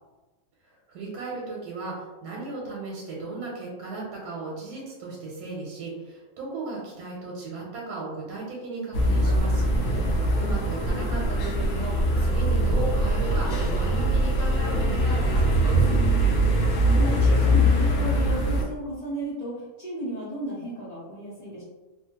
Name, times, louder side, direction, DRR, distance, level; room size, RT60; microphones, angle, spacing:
voice 1, 0.6-9.6 10.3-15.8, right 3 dB, 90° right, -3 dB, 1.2 m, -36 dB
sound 1, 8.9-18.6, equal, 65° left, 0.8 m, -22 dB
voice 2, 16.2-21.6, equal, 45° left, -9 dB, 0.5 m, -34 dB
2.7 x 2.3 x 2.8 m, 1.2 s
omnidirectional pair, 1.6 m